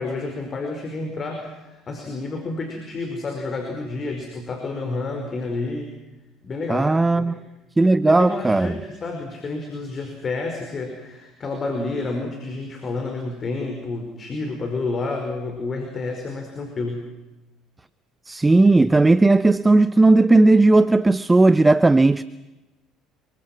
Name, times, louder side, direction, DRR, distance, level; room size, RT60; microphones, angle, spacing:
voice 1, 0.0-5.9 6.4-7.4 8.0-17.1, left 3 dB, 40° left, 5.2 m, -30 dB
voice 2, 6.7-7.3 7.8-8.7 18.3-22.2, right 2 dB, 15° right, 0.7 m, -16 dB
27.0 x 24.5 x 6.1 m
hypercardioid pair, 65°, 0 cm